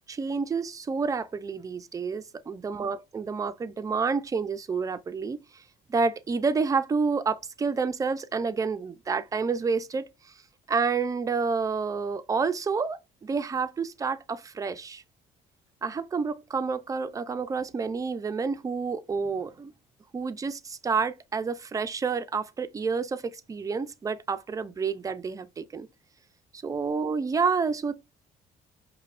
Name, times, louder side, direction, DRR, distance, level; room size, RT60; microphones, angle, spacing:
voice 1, 0.1-5.4 5.9-10.1 10.7-15.0 15.8-19.7 20.1-25.9 26.5-27.9, right 5 dB, 20° right, 0.4 m, -29 dB
5.1 x 2.1 x 2.5 m
cardioid pair, 110°, 17 cm